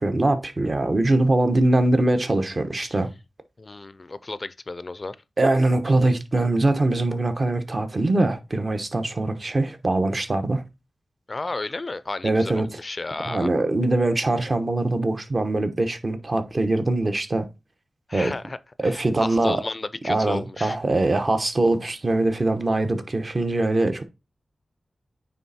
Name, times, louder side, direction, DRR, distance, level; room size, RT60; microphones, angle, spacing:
voice 1, 0.0-3.1 5.4-10.6 12.2-12.8 13.2-17.5 18.1-18.3 18.8-19.6 20.1-24.0, right 2 dB, 35° right, 1.0 m, -22 dB
voice 2, 3.6-5.2 11.3-13.5 18.1-18.6 18.8-20.8, left 3 dB, 35° left, 0.5 m, -33 dB
9.1 x 3.5 x 4.2 m
wide cardioid pair, 115°, 0 cm